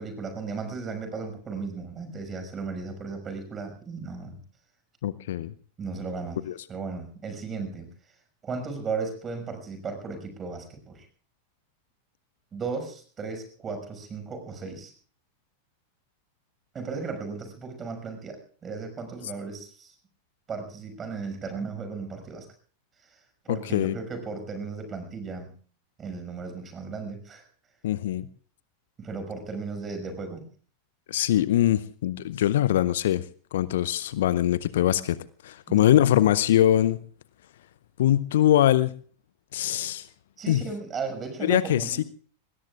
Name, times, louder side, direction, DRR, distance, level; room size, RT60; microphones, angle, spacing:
voice 1, 0.0-4.4 5.8-6.4 6.7-7.9 8.4-11.1 12.5-14.9 16.7-19.9 20.5-22.5 23.0-23.2 23.4-25.5 26.0-27.4 29.0-30.4 35.7-35.9 40.4-42.1, right 4 dB, 20° right, 7 dB, 6.0 m, -35 dB
voice 2, 5.0-5.5 6.5-6.6 23.5-23.9 27.8-28.3 31.1-33.2 33.5-35.2 35.4-37.0 38.0-38.9 39.5-40.1 40.5-40.6 41.4-42.0, left 12 dB, 60° left, 17 dB, 0.7 m, -22 dB
26.5 x 20.5 x 2.5 m, 0.43 s
figure-of-eight pair, 90°, 0 cm